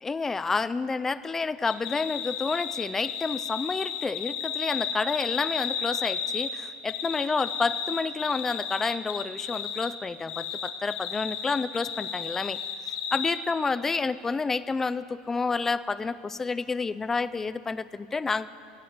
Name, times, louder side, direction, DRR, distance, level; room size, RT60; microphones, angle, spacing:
voice 1, 0.0-12.6 13.1-18.5, left 4 dB, 10° left, 14 dB, 0.3 m, -29 dB
sound 1, 1.7-6.5 6.9-9.9 10.3-13.3, left 7 dB, 70° left, 1.5 m, -33 dB
15.5 x 8.0 x 9.1 m, 2.4 s
supercardioid pair, 160°, 3 cm